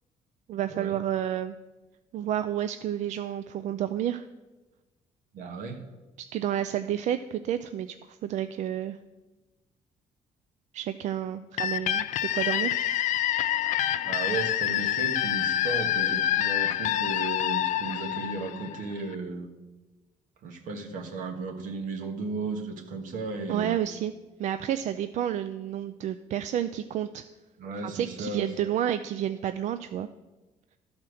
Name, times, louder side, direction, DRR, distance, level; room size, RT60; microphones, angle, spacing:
voice 1, 0.5-1.6 2.1-4.2 6.3-9.0 10.7-12.1 12.3-12.7 23.5-24.1 24.4-27.2 27.8-30.1, right 10 dB, 65° right, 10 dB, 0.4 m, -30 dB
voice 2, 5.3-5.8 14.0-19.5 20.4-23.8 27.6-28.5, right 3 dB, 85° right, 4 dB, 1.4 m, -35 dB
sound 1, 11.6-19.1, left 11 dB, 70° left, 0.4 m, -27 dB
12.5 x 4.3 x 6.3 m, 1.1 s
cardioid pair, 115°, 13 cm